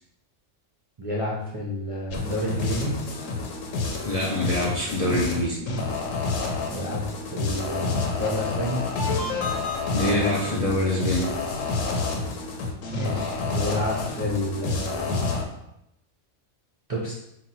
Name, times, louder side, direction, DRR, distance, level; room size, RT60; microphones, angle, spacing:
voice 1, 1.0-2.9 6.7-7.0 7.3-8.8 12.9-15.2 16.9-17.1, left 1 dB, 40° right, -4 dB, 0.5 m, -29 dB
sound 1, 2.1-15.4, left 3 dB, 90° left, 1.1 m, -29 dB
voice 2, 4.1-5.6 9.9-11.3, left 1 dB, 45° left, -4 dB, 0.5 m, -24 dB
3.9 x 2.3 x 4.3 m, 0.82 s
omnidirectional pair, 1.3 m